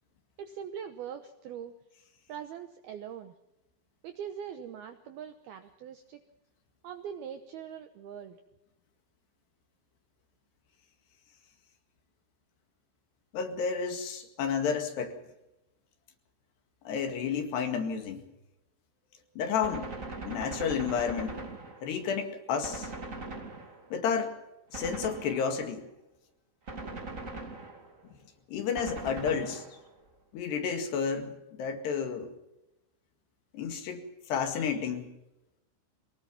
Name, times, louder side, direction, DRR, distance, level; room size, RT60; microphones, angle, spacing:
voice 1, 0.4-1.8 2.3-3.3 4.0-6.2 6.8-8.4, right 8 dB, 75° right, 8 dB, 2.3 m, -42 dB
voice 2, 13.3-15.2 16.9-18.2 19.4-19.9 20.3-21.4 21.8-22.9 23.9-24.4 24.7-25.9 28.5-29.7 30.3-31.3 31.6-32.4 33.5-35.1, left 6 dB, 60° left, 6 dB, 3.9 m, -31 dB
Gunshot gunfire, 19.6-22.1 22.6-24.0 24.7-25.8 26.7-28.0 28.8-30.0, right 3 dB, 40° right, 1.1 m, -41 dB
23.5 x 19.5 x 5.9 m, 0.92 s
omnidirectional pair, 5.7 m